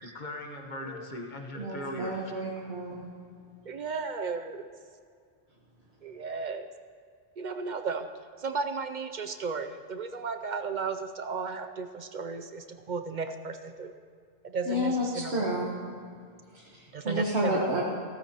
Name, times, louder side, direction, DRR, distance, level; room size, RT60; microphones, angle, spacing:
voice 1, 0.0-2.3, left 1 dB, 45° left, 2 dB, 1.3 m, -39 dB
voice 2, 1.6-3.0 14.7-15.7 16.5-17.8, equal, 75° right, -4 dB, 1.6 m, -30 dB
voice 3, 3.7-4.6 6.0-6.7 7.4-8.1 8.4-13.9 14.4-15.5 16.9-17.8, right 4 dB, 55° right, 7 dB, 0.6 m, -34 dB
16.0 x 14.0 x 2.9 m, 2.3 s
omnidirectional pair, 1.1 m